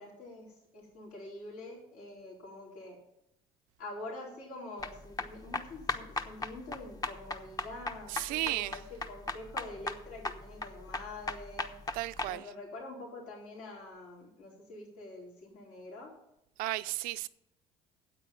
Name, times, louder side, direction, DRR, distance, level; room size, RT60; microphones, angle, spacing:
voice 1, 0.0-3.0 3.8-11.7 12.3-16.1, left 2 dB, 70° left, 4.1 m, -46 dB
sound 1, 4.8-12.3, left 3 dB, 25° left, 1.0 m, -37 dB
voice 2, 8.1-8.8 11.9-12.5 16.6-17.3, right 18 dB, 80° right, 0.5 m, -34 dB
9.2 x 8.5 x 7.0 m
cardioid pair, 105°, 14 cm